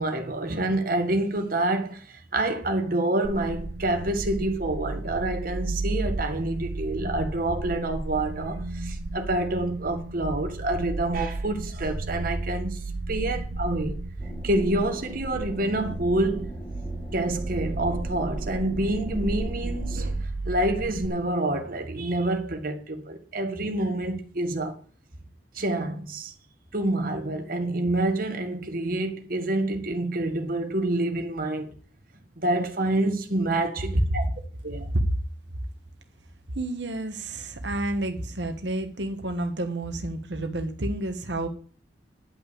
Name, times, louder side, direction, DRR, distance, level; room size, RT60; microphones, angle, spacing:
voice 1, 0.0-14.0 14.4-16.5 17.1-24.7 25.5-26.3 26.7-31.7 32.4-34.3 34.6-34.9, right 1 dB, 55° right, 1.8 m, -27 dB
sound 1, 3.2-21.1, right 2 dB, 75° right, 0.9 m, -33 dB
sound 2, 14.2-20.0, equal, 25° left, 2.1 m, -42 dB
voice 2, 36.5-41.5, right 1 dB, 90° right, 1.4 m, -30 dB
10.5 x 5.9 x 8.6 m
head